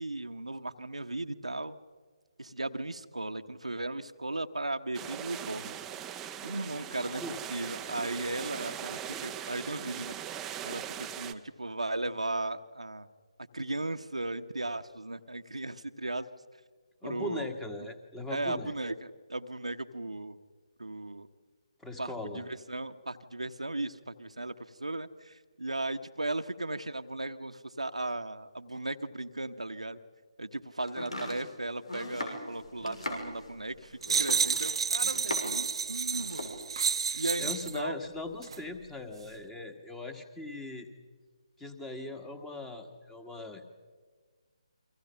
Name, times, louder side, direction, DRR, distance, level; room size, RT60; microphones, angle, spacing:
voice 1, 0.0-1.8 2.4-5.8 6.4-7.2 7.5-10.1 10.6-13.1 13.5-16.3 17.0-17.5 18.3-20.4 20.8-21.3 22.0-30.0 30.4-36.5 37.1-38.0, right 2 dB, 85° right, 7 dB, 1.1 m, -36 dB
sound 1, 4.9-11.3, right 10 dB, 10° right, 0.7 m, -40 dB
voice 2, 17.0-18.7 21.8-22.5 37.1-40.9 41.6-43.6, left 2 dB, 5° left, 7 dB, 1.5 m, -40 dB
Domestic sounds home sounds, 30.9-35.7 36.0-36.6, left 1 dB, 80° left, 6.2 m, -39 dB
sound 2, 34.0-37.8 38.4-38.6, right 6 dB, 55° right, 0.9 m, -30 dB
30.0 x 24.0 x 5.7 m, 1.5 s
figure-of-eight pair, 145°, 3 cm